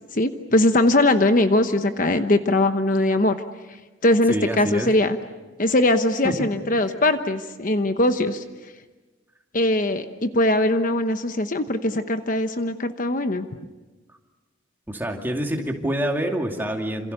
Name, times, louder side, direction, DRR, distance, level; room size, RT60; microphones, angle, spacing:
voice 1, 0.1-3.3 4.0-5.2 5.6-8.4 9.5-13.5, left 1 dB, 45° left, 8 dB, 1.0 m, -21 dB
voice 2, 4.3-4.9 6.2-6.5 14.9-17.1, equal, 10° right, 2 dB, 2.5 m, -26 dB
28.0 x 27.5 x 6.8 m, 1.2 s
head